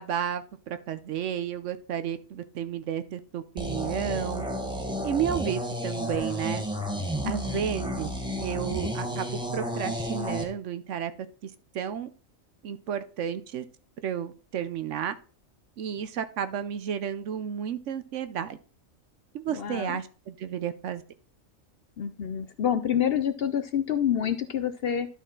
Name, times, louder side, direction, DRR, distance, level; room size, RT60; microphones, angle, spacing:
voice 1, 0.0-4.5 5.0-6.6 7.3-8.1 8.4-11.1 11.4-11.5 11.7-12.1 12.6-13.6 14.0-15.1 15.8-18.6 19.3-21.0, right 9 dB, 70° right, 12 dB, 1.0 m, -32 dB
sound 1, 3.6-10.4, equal, 5° right, 1.0 m, -32 dB
voice 2, 7.2-7.8 19.5-20.0 22.0-25.1, left 9 dB, 60° left, 11 dB, 0.7 m, -28 dB
12.0 x 4.2 x 3.8 m, 0.37 s
omnidirectional pair, 1.4 m